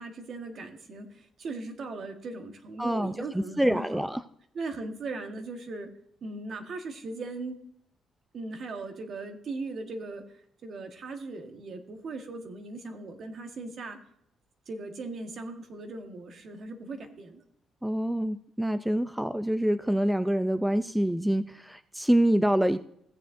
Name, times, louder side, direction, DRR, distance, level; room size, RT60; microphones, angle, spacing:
voice 1, 0.0-4.1 4.5-5.9 6.2-7.6 8.3-10.2 10.6-14.0 14.7-17.4, right 3 dB, 55° right, 5 dB, 1.5 m, -38 dB
voice 2, 2.8-3.1 3.6-4.2 17.8-22.8, right 1 dB, 5° right, 12 dB, 0.4 m, -26 dB
16.0 x 7.4 x 2.7 m, 0.72 s
cardioid pair, 90°, 0 cm